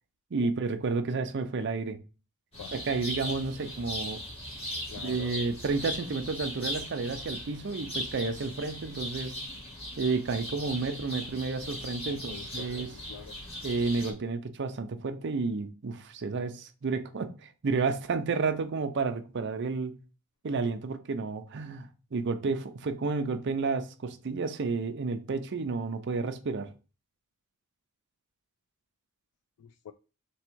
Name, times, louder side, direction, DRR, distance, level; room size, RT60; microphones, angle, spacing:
voice 1, 0.3-2.0 2.7-4.2 5.0-9.4 10.0-12.9 13.6-19.9 20.4-26.7, right 4 dB, 50° right, 0.5 m, -31 dB
sound 1, 2.5-14.1, left 1 dB, 25° left, 1.4 m, -39 dB
voice 2, 4.9-5.4 12.1-13.4 29.6-29.9, left 9 dB, 80° left, 0.3 m, -45 dB
3.5 x 3.1 x 4.5 m
head